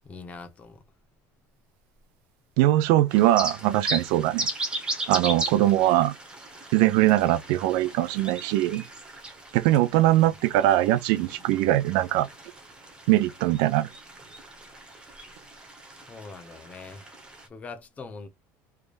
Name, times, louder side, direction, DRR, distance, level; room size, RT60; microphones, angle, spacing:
voice 1, 0.0-0.8 5.6-5.7 16.1-17.1 17.5-18.3, left 4 dB, 20° left, 0.8 m, -42 dB
voice 2, 2.6-4.5 5.1-6.1 6.7-8.8 9.5-12.3 13.1-13.9, right 15 dB, 70° right, 0.4 m, -21 dB
sound 1, 3.1-17.5, right 2 dB, 15° right, 1.0 m, -37 dB
3.3 x 3.3 x 2.4 m
cardioid pair, 165°, 7 cm